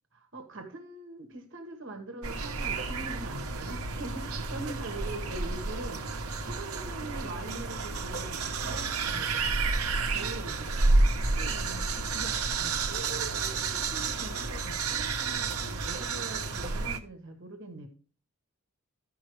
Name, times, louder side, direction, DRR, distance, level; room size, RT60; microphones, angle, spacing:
voice 1, 0.1-6.0 6.4-9.4 10.1-10.9 11.3-17.9, right 2 dB, 60° right, 5 dB, 1.4 m, -43 dB
sound 1, 2.2-17.0, right 3 dB, 80° right, 1.0 m, -30 dB
14.5 x 5.6 x 3.1 m, 0.37 s
head